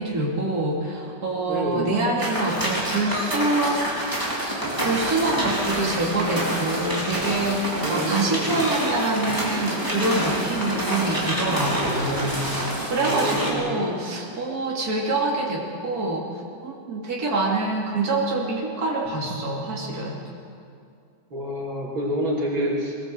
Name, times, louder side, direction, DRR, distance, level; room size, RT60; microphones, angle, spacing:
voice 1, 0.0-3.9 4.5-20.2, right 2 dB, 50° right, -3 dB, 3.2 m, -26 dB
voice 2, 1.5-1.9 7.8-8.6 12.0-12.3 13.0-13.8 21.3-22.9, equal, 90° right, -3 dB, 4.1 m, -28 dB
sound 1, 2.2-13.5, right 1 dB, 10° right, 3.8 m, -27 dB
21.0 x 19.5 x 7.8 m, 2.4 s
omnidirectional pair, 2.1 m